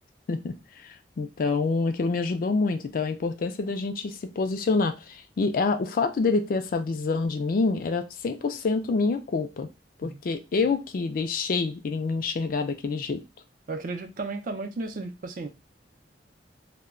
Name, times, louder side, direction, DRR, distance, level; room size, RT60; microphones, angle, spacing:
voice 1, 0.3-9.7 10.0-13.2, left 4 dB, 50° left, 0.4 m, -27 dB
voice 2, 13.7-15.5, right 3 dB, 50° right, 0.5 m, -34 dB
2.2 x 2.1 x 3.6 m
head